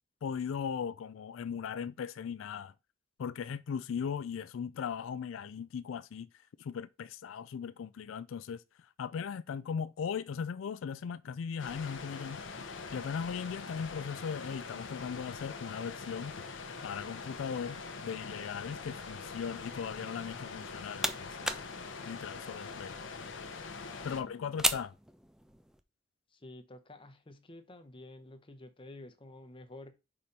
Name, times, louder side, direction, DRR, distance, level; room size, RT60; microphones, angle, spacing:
voice 1, 0.2-2.7 3.2-6.3 6.6-8.6 9.0-12.4 12.9-21.5 22.1-23.0 24.0-24.9, left 6 dB, 90° left, 0.4 m, -38 dB
sound 1, 11.6-24.2, left 4 dB, 70° left, 0.9 m, -43 dB
sound 2, 20.5-25.8, right 1 dB, 5° right, 0.4 m, -38 dB
voice 2, 23.8-24.8 26.3-29.9, left 2 dB, 25° left, 0.9 m, -51 dB
4.9 x 4.3 x 5.2 m
head